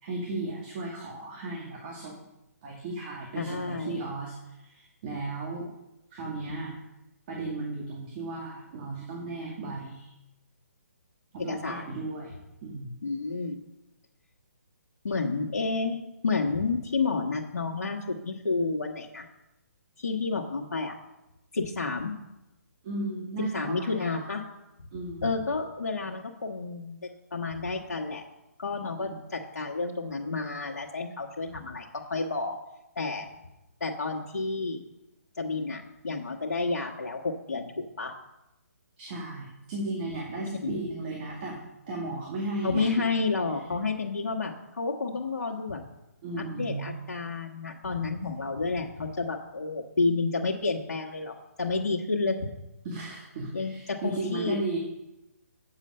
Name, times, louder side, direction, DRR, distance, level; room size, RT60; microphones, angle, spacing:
voice 1, 0.0-2.2 2.6-5.7 6.1-6.8 7.3-10.1 11.3-12.3 12.6-13.0 22.8-24.3 24.9-25.4 29.0-29.1 39.0-42.9 46.2-46.9 52.8-54.8, right 2 dB, 35° right, -2 dB, 2.3 m, -35 dB
voice 2, 3.3-4.0 11.5-11.8 13.0-13.6 15.0-19.3 20.0-20.9 21.5-22.1 23.5-24.4 25.2-28.2 28.6-32.6 32.9-33.3 33.8-34.8 35.3-38.2 40.6-40.7 42.6-45.8 46.4-52.5 53.5-54.6, left 3 dB, 75° left, -3 dB, 1.5 m, -30 dB
8.7 x 7.2 x 5.6 m, 0.93 s
hypercardioid pair, 150°, 9 cm